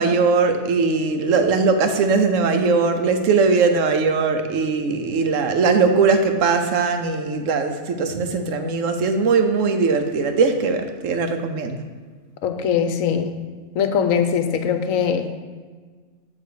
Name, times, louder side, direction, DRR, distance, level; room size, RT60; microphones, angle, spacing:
voice 1, 0.0-11.8, right 4 dB, 70° right, 6 dB, 1.0 m, -20 dB
voice 2, 12.4-13.3 13.7-15.4, left 7 dB, 75° left, 8 dB, 1.0 m, -21 dB
7.8 x 3.9 x 6.6 m, 1.5 s
omnidirectional pair, 1.4 m